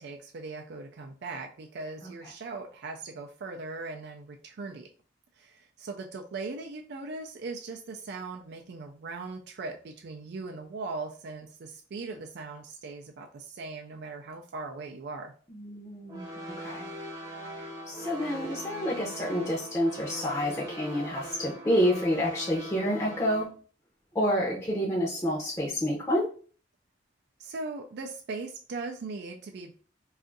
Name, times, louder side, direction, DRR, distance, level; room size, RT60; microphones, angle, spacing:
voice 1, 0.0-4.9 5.4-15.3 27.4-29.7, right 3 dB, 60° right, 3 dB, 0.4 m, -39 dB
voice 2, 15.5-16.9 17.9-23.5 24.1-26.3, equal, 15° left, -5 dB, 0.6 m, -28 dB
sound 1, 16.1-23.4, equal, 20° right, 0.8 m, -41 dB
2.5 x 2.4 x 3.8 m, 0.41 s
head